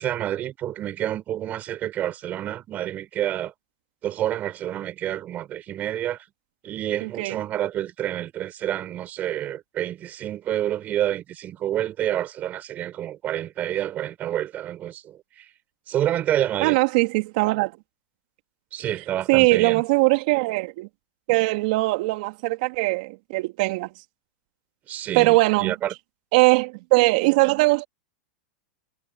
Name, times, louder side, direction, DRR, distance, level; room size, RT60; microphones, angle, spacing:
voice 1, 0.0-3.5 4.0-6.2 6.6-15.5 15.9-16.8 18.7-19.8 24.9-25.9, right 12 dB, 35° right, 7.3 m, -28 dB
voice 2, 7.0-7.4 16.6-17.7 19.3-20.9 21.3-23.9 25.1-25.7 26.3-27.9, right 25 dB, 55° right, 2.9 m, -20 dB
hypercardioid pair, 120°, 5 cm